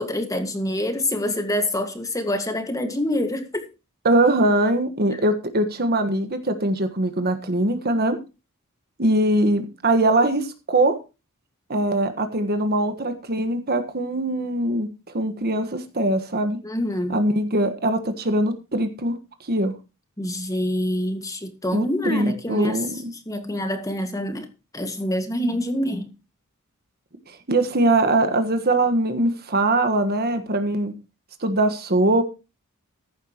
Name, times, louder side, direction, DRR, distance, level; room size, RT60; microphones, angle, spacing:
voice 1, 0.0-3.6 16.6-17.2 20.2-22.8 23.3-24.5 24.7-26.1, left 1 dB, 15° left, 1.8 m, -26 dB
voice 2, 4.0-8.2 9.0-11.0 11.7-14.9 15.1-16.6 17.1-19.2 19.5-19.7 21.7-23.1 27.3-30.9 31.4-32.2, right 1 dB, 45° right, 1.5 m, -22 dB
15.0 x 11.5 x 3.0 m
head